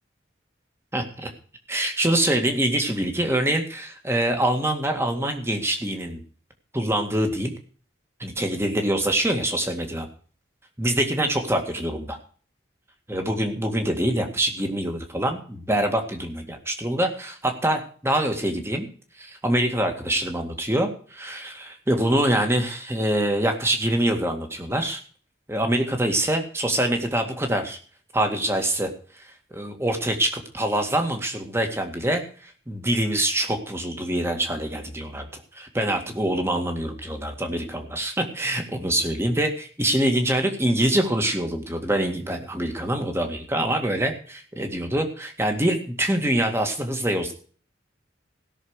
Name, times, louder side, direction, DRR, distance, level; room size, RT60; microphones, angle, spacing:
voice 1, 0.9-1.3 1.7-6.2 6.7-7.5 8.2-10.1 10.8-12.2 13.1-18.9 19.2-25.0 25.5-27.8 28.1-47.3, right 1 dB, 15° right, 5 dB, 2.0 m, -25 dB
17.0 x 6.6 x 6.5 m, 0.43 s
head